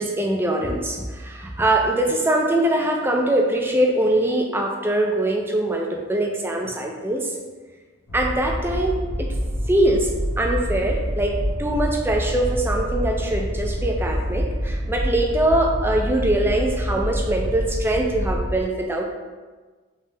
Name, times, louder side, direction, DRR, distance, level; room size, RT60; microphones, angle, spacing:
voice 1, 0.0-7.3 8.1-9.3 9.7-10.1 10.4-11.3 11.6-19.0, right 1 dB, 10° right, 1 dB, 0.3 m, -22 dB
sound 1, 8.1-18.5, equal, 85° left, 0.7 m, -27 dB
3.3 x 2.8 x 3.1 m, 1.3 s
head